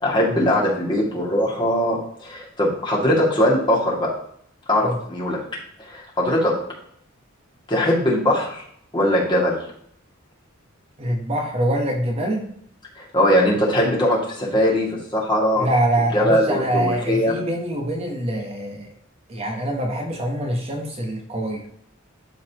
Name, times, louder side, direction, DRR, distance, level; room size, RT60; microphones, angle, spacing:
voice 1, 0.0-4.1 4.7-5.4 5.8-6.5 7.7-8.6 8.9-9.6 13.0-14.9 15.1-15.7 16.1-17.4, equal, 25° left, -4 dB, 2.3 m, -20 dB
voice 2, 11.0-12.5 15.6-18.9 19.3-21.6, right 1 dB, 30° right, 1 dB, 1.0 m, -24 dB
12.0 x 4.1 x 3.0 m, 0.68 s
head